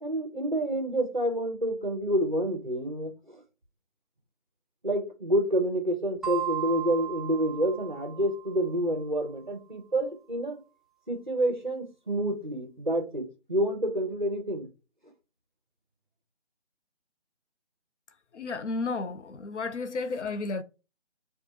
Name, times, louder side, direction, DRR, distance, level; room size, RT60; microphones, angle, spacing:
voice 1, 0.0-3.4 4.8-10.6 11.1-14.7, right 1 dB, 40° right, 0.7 m, -28 dB
sound 1, 6.2-8.7, right 12 dB, ahead, 0.4 m, -36 dB
voice 2, 18.3-20.6, left 3 dB, 80° left, 0.5 m, -32 dB
4.4 x 2.3 x 2.7 m
figure-of-eight pair, 180°, 36 cm